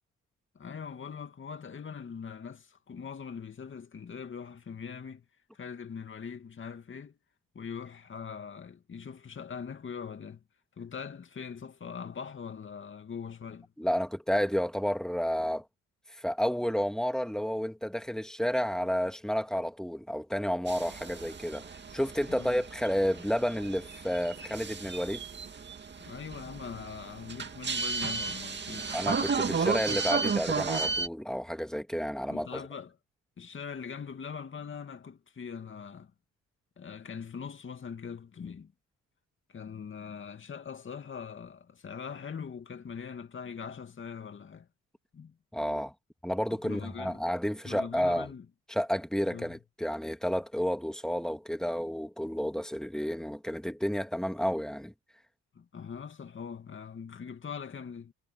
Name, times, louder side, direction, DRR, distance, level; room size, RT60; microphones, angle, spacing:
voice 1, 0.5-5.2 5.5-7.2 7.5-10.4 10.8-13.7 22.3-22.6 26.0-28.9 32.3-33.0 33.4-36.1 36.8-38.7 39.5-44.7 45.1-45.4 46.5-47.2 47.6-48.5 49.3-49.6 55.5-58.1, left 6 dB, 40° left, 2.5 m, -42 dB
voice 2, 13.8-15.6 16.2-25.2 28.9-32.6 45.5-45.9 46.2-48.3 48.7-54.9, equal, ahead, 2.2 m, -31 dB
sound 1, 20.7-31.1, right 4 dB, 35° right, 2.2 m, -34 dB
cardioid pair, 90°, 30 cm